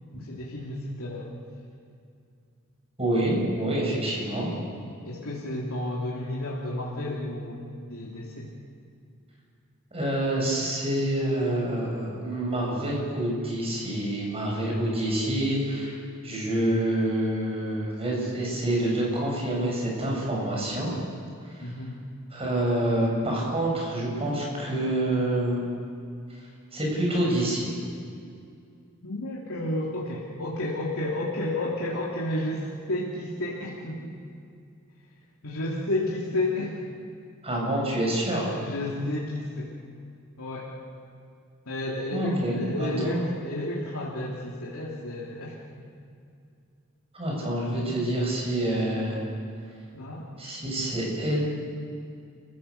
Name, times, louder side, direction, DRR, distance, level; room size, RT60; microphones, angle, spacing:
voice 1, 0.1-1.3 3.6-3.7 5.1-8.5 21.6-22.0 29.0-34.2 35.4-36.8 38.6-39.7 40.4-40.8 41.7-45.9 49.9-50.3, left 1 dB, 80° left, -6 dB, 3.1 m, -32 dB
voice 2, 3.0-4.5 9.9-16.0 16.2-20.9 21.6-21.7 22.3-25.6 26.7-27.7 37.4-38.5 42.1-43.2 47.1-49.2 50.4-51.4, right 1 dB, 30° right, -2 dB, 7.5 m, -27 dB
30.0 x 16.0 x 6.7 m, 2.4 s
head